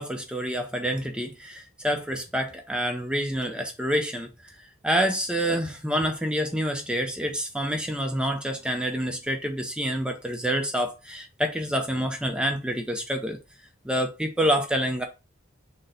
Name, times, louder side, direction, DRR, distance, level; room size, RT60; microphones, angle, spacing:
voice 1, 0.0-4.5 4.8-13.4 13.8-15.0, equal, 5° right, 0.4 m, -27 dB
4.0 x 2.1 x 3.9 m
head